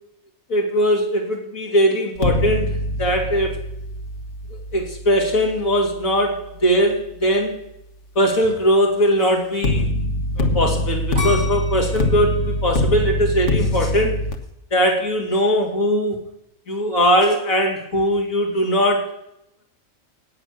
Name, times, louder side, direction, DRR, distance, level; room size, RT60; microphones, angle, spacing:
voice 1, 0.5-3.6 4.7-7.6 8.2-9.9 10.4-14.2 14.7-16.2 16.7-19.1, equal, 80° left, 0 dB, 3.5 m, -20 dB
sound 1, 2.2-7.2 9.6-14.3, left 1 dB, 60° left, 1.6 m, -24 dB
sound 2, 11.1-14.1 14.6-15.1, left 2 dB, 60° right, 7.0 m, -32 dB
18.0 x 8.0 x 6.8 m, 0.82 s
omnidirectional pair, 1.4 m